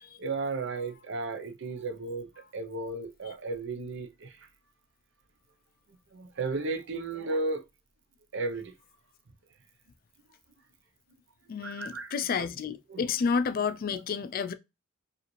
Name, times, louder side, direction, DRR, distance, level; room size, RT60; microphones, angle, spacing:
voice 1, 0.2-2.3 2.5-4.4 6.1-7.6 8.3-8.7 11.6-12.1 12.9-13.0, right 3 dB, 60° right, 0.7 m, -34 dB
voice 2, 11.5-14.5, left 5 dB, 45° left, 0.3 m, -30 dB
4.9 x 2.5 x 3.1 m
head